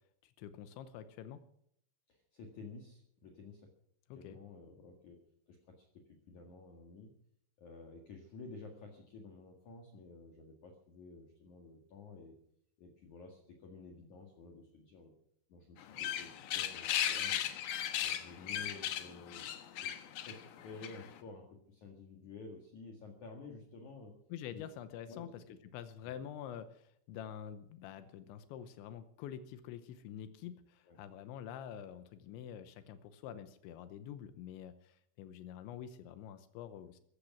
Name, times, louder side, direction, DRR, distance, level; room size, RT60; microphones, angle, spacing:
voice 1, 0.2-1.4 4.1-4.4 24.3-25.4 25.7-37.0, left 9 dB, 85° left, 11 dB, 3.2 m, -47 dB
voice 2, 2.1-3.7 4.1-5.2 5.5-7.1 7.6-12.4 12.8-15.1 15.5-17.5 18.0-19.5 19.8-19.9 20.2-24.1 24.5-24.6 25.1-25.6 26.0-26.2 30.8-31.0, left 4 dB, 50° left, 2 dB, 2.6 m, -52 dB
sound 1, 15.8-21.2, left 10 dB, 70° left, 2.1 m, -37 dB
15.5 x 15.0 x 6.0 m, 0.69 s
omnidirectional pair, 5.3 m